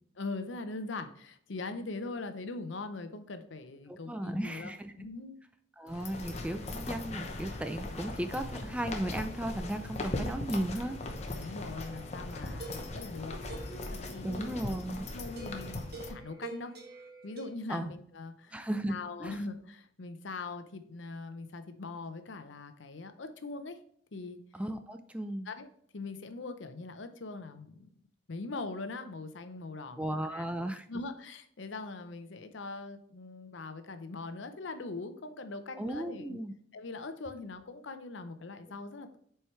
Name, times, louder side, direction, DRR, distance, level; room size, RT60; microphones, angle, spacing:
voice 1, 0.2-5.4 11.4-14.6 15.1-16.8 17.2-18.6 18.9-23.8 24.1-24.4 25.5-25.7 25.9-27.9 28.3-30.5 30.9-36.4 36.7-39.2, left 3 dB, 80° left, 9 dB, 0.7 m, -41 dB
voice 2, 3.9-4.9 5.8-11.0 14.2-15.0 17.7-17.9 18.5-18.9 19.2-19.4 24.5-25.5 30.0-30.9 35.8-36.5, right 1 dB, 5° right, 8 dB, 0.3 m, -35 dB
sound 1, 5.9-16.1, left 2 dB, 35° left, 0.8 m, -39 dB
sound 2, 11.8-13.9 15.4-17.5, right 3 dB, 55° right, 1.3 m, -47 dB
7.8 x 4.5 x 3.2 m, 0.64 s
head